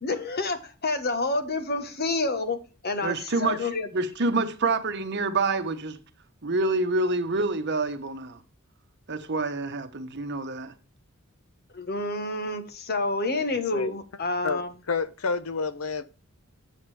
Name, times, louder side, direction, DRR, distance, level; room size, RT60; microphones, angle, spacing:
voice 1, 0.0-2.6 2.8-3.9 11.7-14.7, left 2 dB, 50° left, 1.2 m, -28 dB
voice 2, 3.0-6.0 6.4-8.4 9.1-10.7, right 3 dB, 55° right, 1.1 m, -27 dB
voice 3, 14.4-16.0, left 4 dB, 85° left, 0.8 m, -29 dB
9.4 x 7.3 x 3.3 m
head